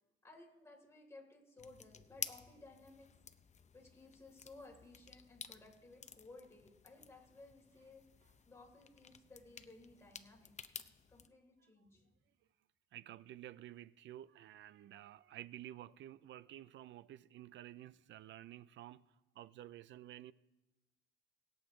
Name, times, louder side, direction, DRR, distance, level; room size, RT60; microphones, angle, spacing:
voice 1, 0.2-3.1 3.7-8.0 8.5-10.5 11.1-12.0, left 2 dB, 15° left, 3.6 m, -58 dB
sound 1, 1.6-11.3, left 6 dB, 35° left, 0.7 m, -52 dB
voice 2, 12.9-19.0 19.3-20.3, right 13 dB, 70° right, 0.5 m, -52 dB
21.0 x 7.9 x 3.2 m
cardioid pair, 90°, 20 cm